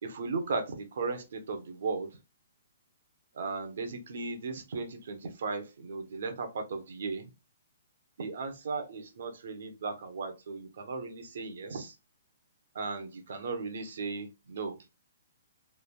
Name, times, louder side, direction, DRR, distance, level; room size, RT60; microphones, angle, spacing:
voice 1, 0.0-2.2 3.3-7.3 8.2-11.9 12.7-14.8, right 4 dB, 65° right, 0.8 m, -36 dB
3.2 x 2.4 x 2.2 m
hypercardioid pair, 160°, 0 cm